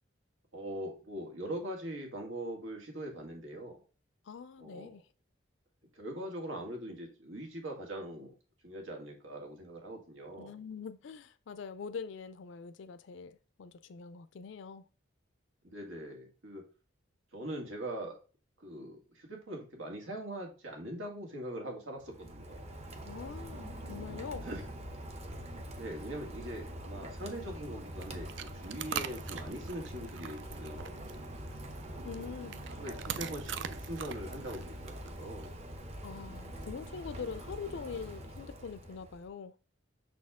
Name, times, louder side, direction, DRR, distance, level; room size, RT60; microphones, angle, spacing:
voice 1, 0.5-3.8 4.6-5.0 6.0-8.3 8.6-10.6 15.6-16.7 17.3-18.2 18.6-22.6 24.4-24.7 25.8-31.1 31.8-32.0 32.7-35.6, right 1 dB, 85° right, 2.0 m, -42 dB
voice 2, 4.3-5.0 10.4-14.8 23.1-24.5 32.0-32.6 36.0-39.5, left 5 dB, 70° left, 0.4 m, -43 dB
Rain, 22.0-39.3, equal, 35° right, 0.8 m, -44 dB
sound 1, 27.8-35.7, right 8 dB, 70° right, 0.4 m, -43 dB
6.2 x 4.3 x 3.6 m
head